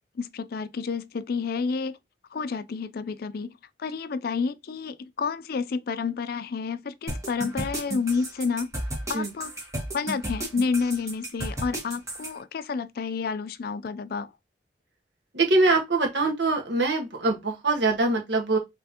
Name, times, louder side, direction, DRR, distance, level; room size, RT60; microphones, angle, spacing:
voice 1, 0.2-2.0 2.3-3.5 3.8-8.7 9.1-9.5 9.9-14.3, left 5 dB, 60° left, 0.4 m, -30 dB
sound 1, 7.1-12.3, right 1 dB, 20° right, 1.6 m, -33 dB
voice 2, 15.3-18.6, right 2 dB, 80° right, 1.4 m, -23 dB
5.6 x 3.4 x 2.8 m
head